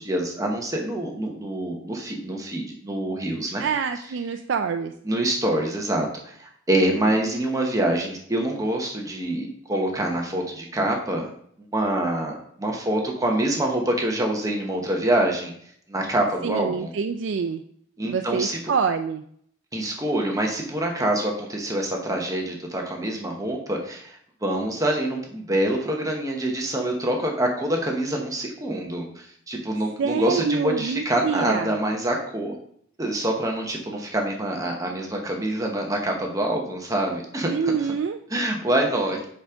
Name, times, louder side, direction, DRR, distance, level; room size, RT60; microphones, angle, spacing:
voice 1, 0.0-3.6 5.0-11.3 11.7-15.5 15.9-16.9 18.0-18.6 19.7-32.6 33.0-37.9 38.3-39.3, right 1 dB, 20° right, 1 dB, 1.0 m, -26 dB
voice 2, 3.6-4.9 16.4-17.6 18.0-19.2 30.0-31.8 37.4-38.2, right 5 dB, 65° right, 6 dB, 0.4 m, -26 dB
7.3 x 5.1 x 3.5 m, 0.64 s
head